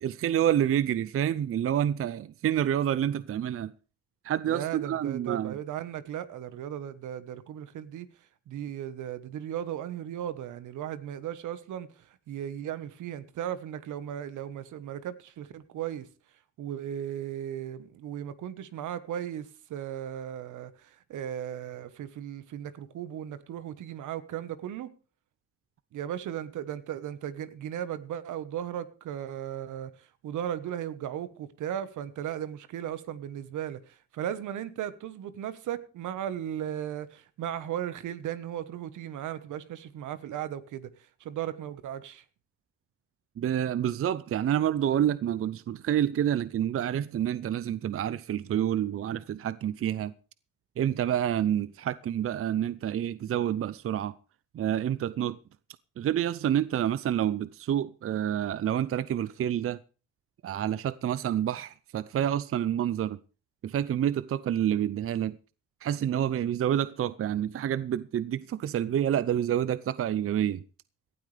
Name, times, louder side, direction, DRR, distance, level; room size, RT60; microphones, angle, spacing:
voice 1, 0.0-3.7 4.2-5.6 43.4-50.1 50.8-54.1 54.5-55.4 56.0-59.8 60.4-63.2 63.6-65.4 65.8-70.6, right 10 dB, 45° right, 0.6 m, -28 dB
voice 2, 4.5-8.1 8.5-16.1 16.6-24.9 25.9-40.9 41.2-42.2, right 10 dB, 80° right, 1.3 m, -36 dB
18.0 x 12.5 x 3.4 m
cardioid pair, 90°, 30 cm